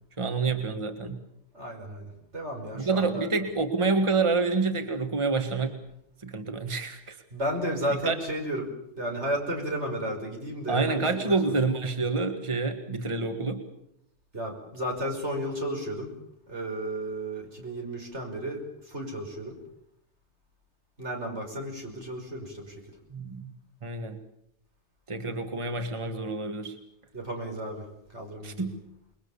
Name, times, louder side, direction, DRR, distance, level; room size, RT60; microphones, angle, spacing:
voice 1, 0.2-1.2 2.8-5.8 6.2-7.2 8.1-8.2 10.7-13.6 23.1-23.5 23.8-24.2 25.1-26.8 28.4-28.7, right 3 dB, 25° right, 6 dB, 1.7 m, -28 dB
voice 2, 1.5-3.3 7.3-8.7 9.0-11.5 14.3-16.1 16.5-19.6 21.0-22.8 27.1-27.9 28.1-28.7, right 1 dB, 75° right, 2 dB, 5.9 m, -33 dB
28.0 x 22.0 x 7.1 m, 0.76 s
omnidirectional pair, 1.2 m